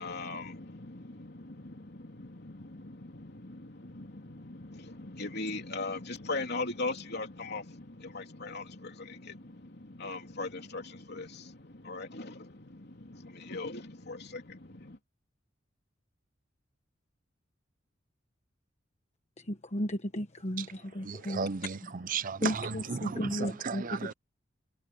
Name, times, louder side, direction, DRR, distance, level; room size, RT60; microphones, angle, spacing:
voice 1, 0.0-15.0, left 3 dB, 55° left, 3.3 m, -40 dB
voice 2, 19.5-21.5 22.4-24.1, equal, 35° left, 1.2 m, -34 dB
voice 3, 21.0-24.1, right 5 dB, 45° right, 0.6 m, -35 dB
head